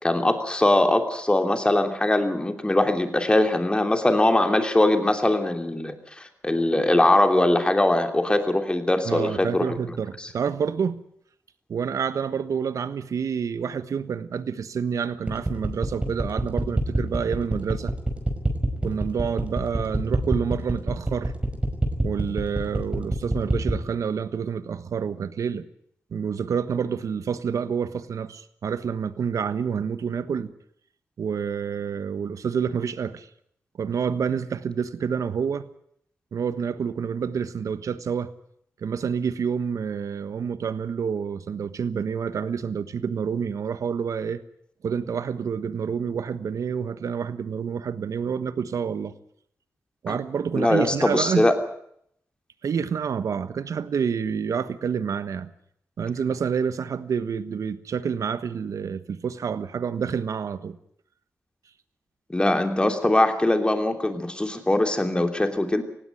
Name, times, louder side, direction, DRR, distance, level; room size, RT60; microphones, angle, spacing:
voice 1, 0.0-10.3 50.1-50.2 50.5-51.5 62.3-65.8, left 1 dB, 15° left, 6 dB, 3.0 m, -22 dB
voice 2, 9.0-11.0 11.7-17.9 18.8-21.3 22.0-25.6 26.1-30.5 31.2-33.3 33.8-35.7 36.3-38.3 38.8-44.4 44.8-49.1 50.0-51.4 52.6-55.5 56.0-60.8, right 6 dB, 75° right, 13 dB, 1.3 m, -28 dB
sound 1, 15.3-23.8, right 2 dB, 20° right, 5.3 m, -25 dB
18.5 x 16.5 x 9.1 m, 0.69 s
cardioid pair, 75°, 6 cm